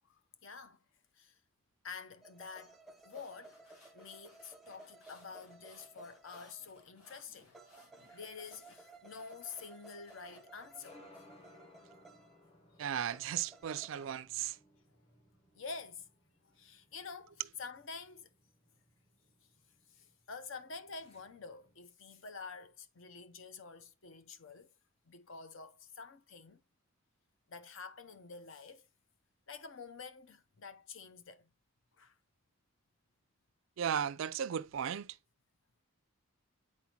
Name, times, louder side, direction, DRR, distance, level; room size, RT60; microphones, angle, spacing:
voice 1, 0.0-0.8 1.1-1.4 1.8-3.6 3.9-7.5 8.1-11.0 15.5-16.1 16.4-18.3 19.9-24.7 25.1-26.6 27.5-28.8 29.5-31.5 31.9-32.2, left 5 dB, 60° left, 0.7 m, -48 dB
sound 1, 2.2-6.9 7.5-12.4 13.1-14.2, right 2 dB, ahead, 0.7 m, -58 dB
sound 2, 2.9-10.8, left 3 dB, 90° left, 2.3 m, -64 dB
sound 3, 7.9-21.9, left 1 dB, 25° left, 1.1 m, -64 dB
voice 2, 12.8-14.6 33.8-35.2, right 9 dB, 60° right, 0.3 m, -36 dB
8.4 x 4.2 x 2.9 m
head